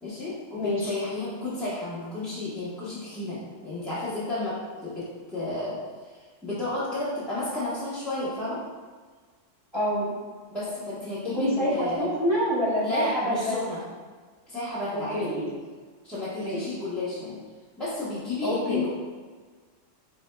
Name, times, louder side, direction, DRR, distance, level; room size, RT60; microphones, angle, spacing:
voice 1, 0.0-8.6 10.5-12.1 12.8-13.8 14.5-15.2 16.0-17.4 17.8-18.9, left 2 dB, ahead, -14 dB, 0.8 m, -32 dB
voice 2, 0.6-0.9 9.7-10.1 11.3-13.6 14.9-15.5 16.4-16.7 18.4-18.8, equal, 20° right, -10 dB, 1.2 m, -27 dB
4.8 x 4.1 x 2.2 m, 1.5 s
omnidirectional pair, 1.3 m